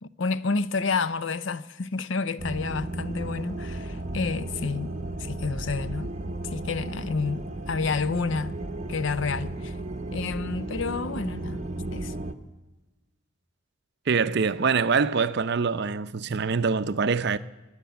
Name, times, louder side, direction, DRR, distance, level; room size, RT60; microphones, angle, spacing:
voice 1, 0.0-4.9 5.2-6.1 6.4-8.6 8.9-9.7 10.1-11.7 11.9-12.1, left 4 dB, 60° left, 0.6 m, -29 dB
sound 1, 2.4-12.3, right 2 dB, 35° right, 0.9 m, -34 dB
voice 2, 14.1-17.4, right 5 dB, 50° right, 0.5 m, -24 dB
22.5 x 8.1 x 8.0 m
head